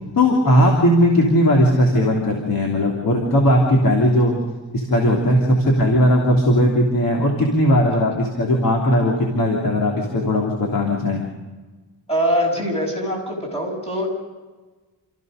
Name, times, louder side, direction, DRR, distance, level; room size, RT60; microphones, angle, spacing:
voice 1, 0.1-4.3 4.7-11.2, equal, 50° left, -1 dB, 3.3 m, -18 dB
voice 2, 12.1-14.1, equal, 15° left, -1 dB, 7.1 m, -24 dB
28.0 x 15.0 x 6.6 m, 1.3 s
wide cardioid pair, 165°, 44 cm